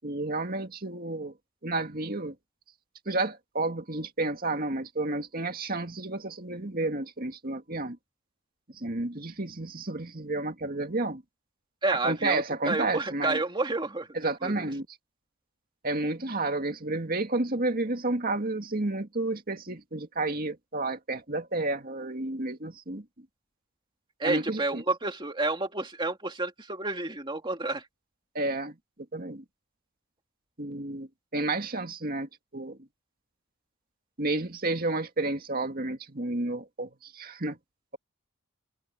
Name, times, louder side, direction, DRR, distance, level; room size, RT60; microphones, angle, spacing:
voice 1, 0.0-1.3 1.6-2.3 3.1-8.0 8.7-11.2 11.9-13.4 14.1-14.9 15.8-23.0 24.2-24.8 28.3-28.8 29.1-29.4 30.6-32.8 34.2-37.6, right 2 dB, 40° right, 2.2 m, -31 dB
voice 2, 11.8-14.1 14.4-14.6 24.2-27.9, right 2 dB, 20° right, 2.7 m, -30 dB
head